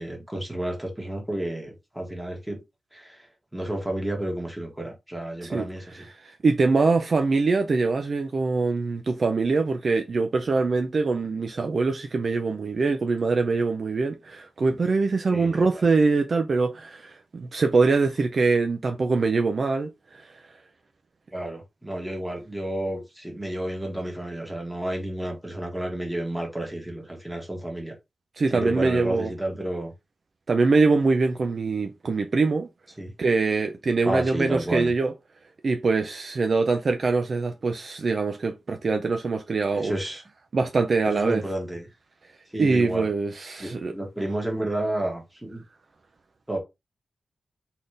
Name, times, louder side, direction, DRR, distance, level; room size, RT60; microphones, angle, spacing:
voice 1, 0.0-2.6 2.9-6.1 15.3-15.8 21.3-27.9 28.5-29.9 33.0-33.1 34.0-34.9 39.7-40.2 41.0-41.9 42.5-43.1 43.6-45.6 46.5-46.6, right 1 dB, 5° right, 1.6 m, -31 dB
voice 2, 5.9-20.4 28.4-29.3 30.5-32.7 33.2-35.1 35.6-39.9 40.5-41.4 42.6-43.9, right 4 dB, 45° right, 0.5 m, -23 dB
4.2 x 3.9 x 3.3 m
wide cardioid pair, 165°, 0 cm